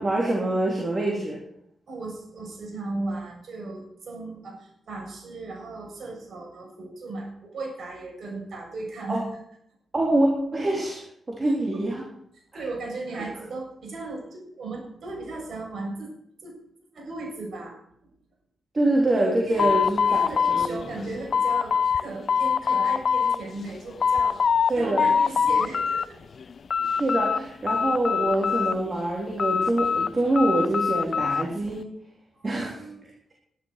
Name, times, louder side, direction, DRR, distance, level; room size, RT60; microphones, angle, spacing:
voice 1, 0.0-1.4 9.1-9.2 9.9-12.1 12.5-12.6 18.7-20.8 24.7-25.0 26.9-31.8 32.4-32.8, right 1 dB, 30° right, -2 dB, 3.6 m, -25 dB
voice 2, 1.9-9.2 11.4-11.9 12.5-16.1 16.4-16.6 16.9-17.8 19.5-19.7 20.1-24.4 24.7-26.2 32.3-33.0, right 2 dB, 60° right, -1 dB, 7.2 m, -36 dB
sound 1, 19.6-22.0 22.3-23.4 23.8-24.7 25.0-26.1 26.4-27.4 27.7-28.9 29.4-31.5, left 6 dB, 50° left, 0.5 m, -23 dB
12.0 x 11.5 x 6.7 m, 0.71 s
cardioid pair, 105°, 0 cm